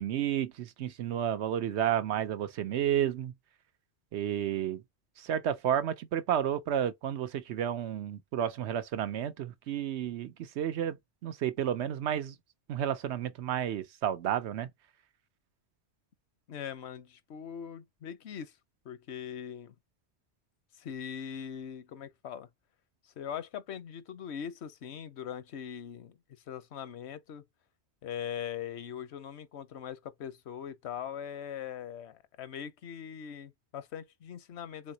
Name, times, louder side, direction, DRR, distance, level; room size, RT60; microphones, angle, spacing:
voice 1, 0.0-3.3 4.1-4.8 5.2-11.0 11.2-12.4 12.7-14.7, right 10 dB, 90° right, 0.9 m, -31 dB
voice 2, 16.5-18.5 18.8-19.7 20.7-22.5 23.0-26.2 26.5-27.5 28.0-34.9, left 8 dB, 80° left, 1.0 m, -41 dB
4.1 x 3.8 x 2.7 m
omnidirectional pair, 1.1 m